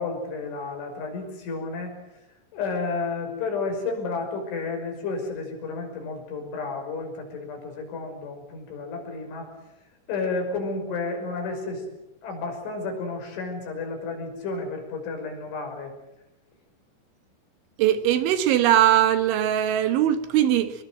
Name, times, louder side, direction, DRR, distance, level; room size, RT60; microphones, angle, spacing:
voice 1, 0.0-1.9 2.5-9.5 10.1-11.8 12.2-16.0, left 3 dB, 65° left, 8.2 m, -31 dB
voice 2, 17.8-20.7, right 11 dB, 70° right, 3.5 m, -20 dB
26.0 x 22.0 x 7.9 m
omnidirectional pair, 5.9 m